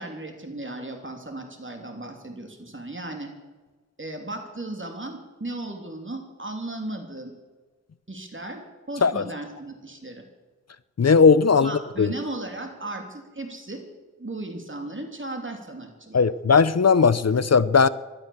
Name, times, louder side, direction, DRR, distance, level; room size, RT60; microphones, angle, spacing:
voice 1, 0.0-3.3 4.0-7.3 8.1-8.6 8.9-10.2 11.6-13.8 14.2-16.2, right 2 dB, 45° right, 3 dB, 3.1 m, -36 dB
voice 2, 11.0-12.1 16.1-17.9, left 5 dB, 60° left, 17 dB, 0.6 m, -18 dB
17.0 x 12.0 x 7.2 m, 1.3 s
wide cardioid pair, 55°, 29 cm